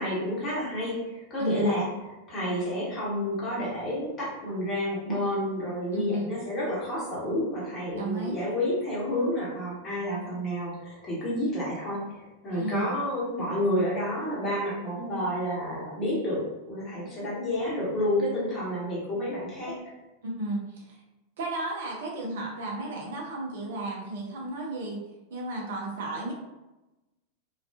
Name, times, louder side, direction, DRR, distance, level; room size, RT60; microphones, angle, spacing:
voice 1, 0.0-1.9 2.3-19.8, left 1 dB, 25° left, -7 dB, 1.2 m, -30 dB
voice 2, 1.4-1.8 5.9-6.3 7.9-8.5 12.5-13.0 20.2-21.0 21.4-25.0 25.3-26.3, right 2 dB, 60° right, -1 dB, 0.5 m, -33 dB
2.4 x 2.3 x 2.3 m, 1.0 s
figure-of-eight pair, 90°, 0 cm